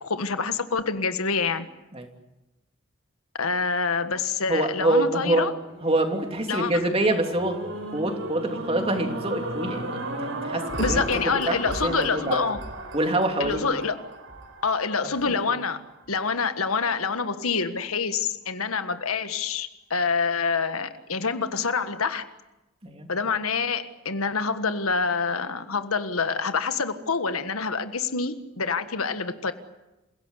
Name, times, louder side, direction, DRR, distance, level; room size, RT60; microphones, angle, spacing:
voice 1, 0.0-1.6 3.4-5.5 6.5-6.7 10.8-12.6 13.4-14.0 14.6-15.8 16.1-22.2 23.1-29.5, left 5 dB, 90° left, 10 dB, 1.6 m, -26 dB
voice 2, 4.5-5.4 5.8-10.2 10.4-12.4 12.9-13.6 15.2-15.3 22.8-23.1, right 2 dB, 25° right, 4 dB, 3.0 m, -26 dB
sound 1, 5.6-15.9 16.5-16.6, right 1 dB, 65° right, 3.9 m, -35 dB
28.0 x 17.0 x 9.8 m, 1.0 s
head